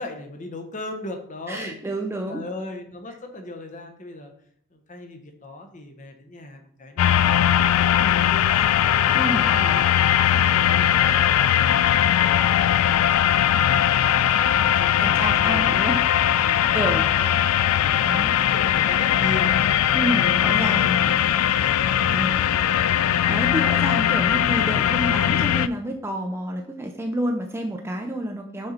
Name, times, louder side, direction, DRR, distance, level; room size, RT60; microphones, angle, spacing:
voice 1, 0.0-1.8 2.3-4.3 4.7-13.3 13.7-14.2 14.5-15.8 16.4-17.3 17.8-20.7 21.0-21.6 21.9-22.6, left 1 dB, 35° left, 5 dB, 0.8 m, -38 dB
voice 2, 1.5-2.4 9.1-9.5 15.0-16.0 16.7-17.0 18.0-18.3 19.9-21.0 22.1-22.3 23.3-28.7, right 1 dB, 10° right, 3 dB, 0.4 m, -29 dB
sound 1, 7.0-25.7, left 10 dB, 85° left, 0.3 m, -20 dB
6.6 x 4.0 x 4.2 m, 0.64 s
head